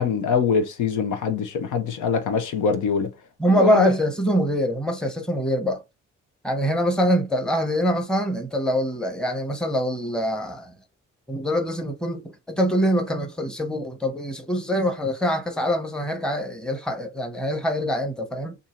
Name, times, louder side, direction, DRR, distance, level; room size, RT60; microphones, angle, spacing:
voice 1, 0.0-3.1 3.5-3.9, left 6 dB, 80° left, 0.8 m, -23 dB
voice 2, 3.4-5.8 6.4-10.7 11.3-18.6, equal, 5° left, 0.9 m, -24 dB
2.7 x 2.7 x 4.3 m
cardioid pair, 90°, 30 cm